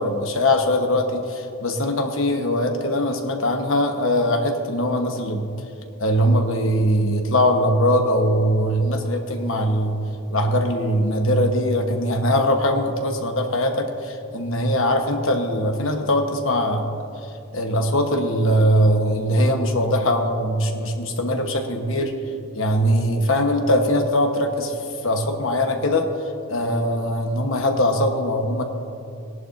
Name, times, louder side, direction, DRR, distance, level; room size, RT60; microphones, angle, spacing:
voice 1, 0.0-5.5 6.0-10.0 10.3-16.8 17.5-22.1 22.5-24.8 25.0-26.1 26.5-28.6, equal, 65° left, 4 dB, 1.1 m, -21 dB
17.5 x 11.0 x 2.6 m, 2.6 s
head